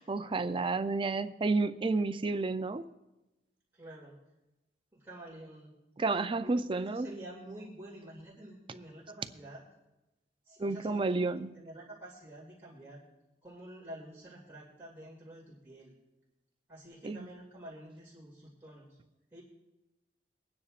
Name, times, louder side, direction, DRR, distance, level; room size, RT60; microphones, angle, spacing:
voice 1, 0.0-2.9 6.0-7.1 10.6-11.5 17.0-17.3, right 3 dB, 30° right, 11 dB, 0.4 m, -31 dB
voice 2, 3.7-4.2 4.9-5.7 6.4-9.6 10.5-13.0 13.4-15.9 16.7-19.0 19.3-19.4, right 1 dB, 10° right, -7 dB, 2.4 m, -49 dB
23.0 x 9.7 x 2.5 m, 1.0 s
head